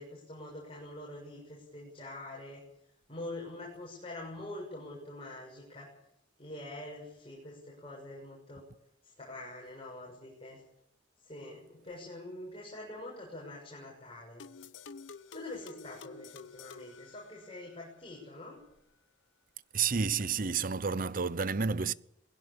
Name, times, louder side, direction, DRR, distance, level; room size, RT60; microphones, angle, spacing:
voice 1, 0.0-2.6 3.1-5.9 6.4-8.6 9.0-10.6 11.2-14.4 15.3-18.6, left 1 dB, 30° left, 6.9 m, -45 dB
sound 1, 14.4-17.9, left 4 dB, 90° left, 1.0 m, -50 dB
voice 2, 19.7-21.9, right 5 dB, 45° right, 0.7 m, -30 dB
20.5 x 16.5 x 8.8 m
head